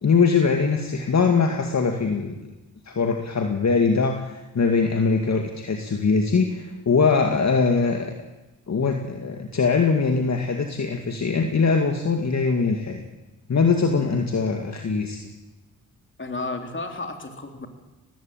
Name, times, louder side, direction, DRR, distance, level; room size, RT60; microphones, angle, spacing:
voice 1, 0.0-2.4 2.9-8.1 8.7-13.0 13.5-15.2, left 4 dB, 50° left, 4 dB, 2.2 m, -22 dB
voice 2, 16.2-17.7, left 3 dB, 35° left, 5 dB, 3.7 m, -32 dB
19.0 x 16.0 x 9.1 m, 1.1 s
cardioid pair, 65°, 36 cm